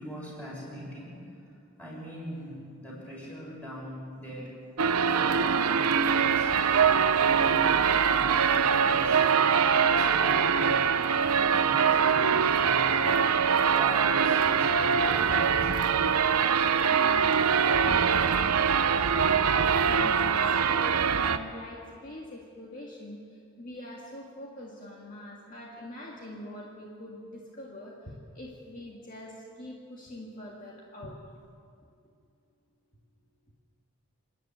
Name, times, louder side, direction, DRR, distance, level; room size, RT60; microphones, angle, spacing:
voice 1, 0.0-1.3 1.8-4.6 5.2-6.6 6.9-9.2 9.8-13.1 13.7-16.2, equal, 5° left, -5 dB, 6.4 m, -41 dB
sound 1, 4.8-21.4, right 6 dB, 90° right, 0.8 m, -23 dB
voice 2, 16.6-19.5 19.9-31.2, left 1 dB, 35° left, -3 dB, 2.0 m, -44 dB
28.0 x 10.5 x 8.9 m, 2.4 s
head